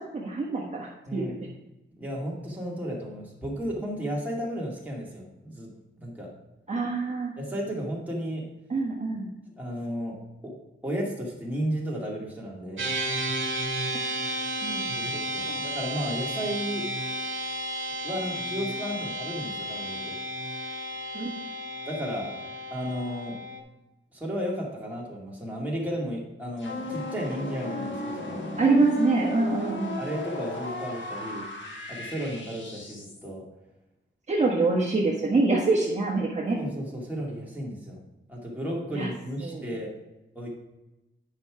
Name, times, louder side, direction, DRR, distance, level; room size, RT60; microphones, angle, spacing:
voice 1, 0.0-1.3 6.7-7.3 8.7-9.3 13.9-14.1 14.6-14.8 21.1-21.3 28.6-30.0 34.3-36.6 38.9-39.1 39.4-39.6, right 3 dB, 35° right, -4 dB, 1.4 m, -25 dB
voice 2, 2.0-5.7 6.0-6.3 7.4-8.5 9.6-12.9 14.9-16.9 18.0-20.2 21.9-22.3 22.7-23.4 24.1-28.5 29.2-29.4 30.0-31.4 31.9-33.5 36.6-38.0 38.3-39.9 40.3-40.5, equal, 10° right, -5 dB, 2.4 m, -33 dB
sound 1, 12.8-23.6, right 1 dB, 70° right, 1.6 m, -32 dB
sound 2, 26.6-33.3, left 1 dB, 70° left, 1.5 m, -35 dB
9.6 x 5.7 x 4.8 m, 0.97 s
wide cardioid pair, 155°, 20 cm